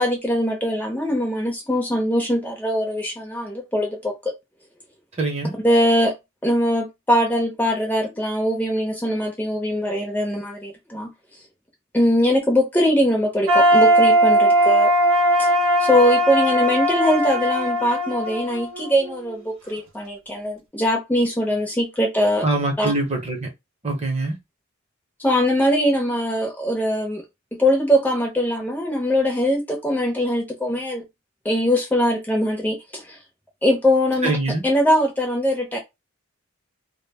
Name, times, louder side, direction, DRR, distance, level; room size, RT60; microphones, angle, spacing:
voice 1, 0.0-4.1 5.6-6.1 6.4-11.1 11.9-14.9 15.4-15.5 15.8-22.5 22.8-22.9 25.2-27.2 27.6-31.0 31.4-33.2 33.6-34.3 34.6-35.8, equal, 10° left, 0.5 m, -21 dB
voice 2, 5.2-5.5 22.4-23.5 23.8-24.4 34.2-34.6, right 2 dB, 30° right, 0.8 m, -23 dB
sound 1, 13.5-19.4, right 1 dB, 75° right, 0.8 m, -19 dB
2.2 x 2.0 x 3.3 m
head